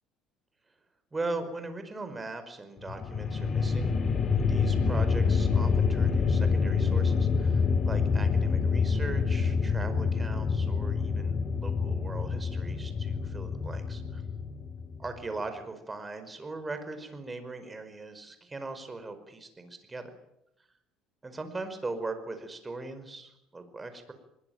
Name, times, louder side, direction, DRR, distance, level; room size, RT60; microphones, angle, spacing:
voice 1, 1.1-3.9 4.4-14.2 15.0-20.1 21.2-24.1, right 3 dB, 15° right, 8 dB, 5.1 m, -39 dB
sound 1, 2.8-15.1, left 5 dB, 35° left, 2.9 m, -27 dB
24.5 x 22.0 x 9.5 m, 0.83 s
cardioid pair, 135°, 0 cm